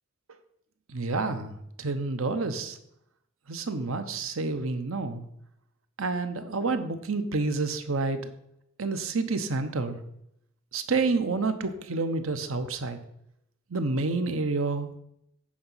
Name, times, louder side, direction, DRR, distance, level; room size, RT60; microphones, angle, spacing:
voice 1, 0.9-1.5 1.8-2.8 3.5-5.2 6.0-8.3 8.8-10.0 10.7-13.0 13.7-15.0, right 3 dB, 75° right, 9 dB, 0.9 m, -29 dB
8.6 x 5.2 x 5.6 m, 0.76 s
head